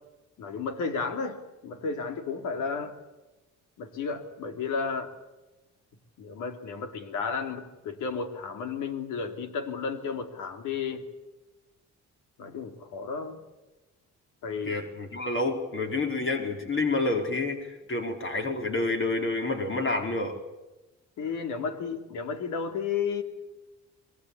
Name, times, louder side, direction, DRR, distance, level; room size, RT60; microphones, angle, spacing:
voice 1, 0.4-3.0 3.8-5.1 6.2-11.1 12.4-13.4 14.4-14.8 21.2-23.2, left 5 dB, 85° left, 7 dB, 3.2 m, -33 dB
voice 2, 14.6-20.4, left 2 dB, 40° left, 3 dB, 4.5 m, -29 dB
26.5 x 21.5 x 8.5 m, 1.1 s
cardioid pair, 90°, 30 cm